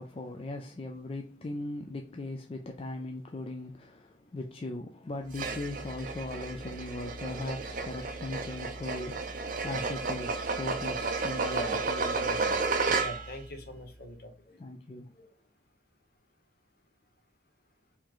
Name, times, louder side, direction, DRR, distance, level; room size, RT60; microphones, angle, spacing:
voice 1, 0.0-13.2 14.5-15.3, left 2 dB, 30° left, 0.4 m, -39 dB
sound 1, 5.3-13.4, right 4 dB, 45° right, 0.6 m, -32 dB
voice 2, 11.4-11.8 12.2-12.6 12.9-14.3, equal, 55° left, 1.0 m, -41 dB
4.7 x 2.9 x 3.7 m
head